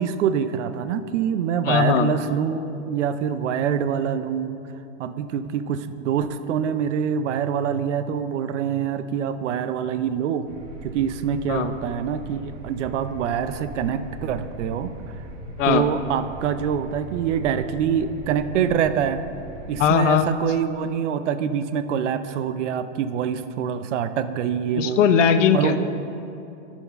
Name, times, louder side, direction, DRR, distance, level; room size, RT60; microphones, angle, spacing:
voice 1, 0.0-4.5 5.0-10.5 10.8-15.2 15.6-19.2 19.7-25.0 25.5-25.8, right 8 dB, 70° right, 11 dB, 0.6 m, -25 dB
voice 2, 1.6-2.1 11.5-11.7 15.6-15.9 19.8-20.3 24.8-25.8, left 7 dB, 80° left, 9 dB, 0.8 m, -19 dB
sound 1, 10.5-19.9, right 2 dB, 40° right, 1.3 m, -39 dB
12.5 x 4.5 x 5.6 m, 2.8 s
supercardioid pair, 155°, 37 cm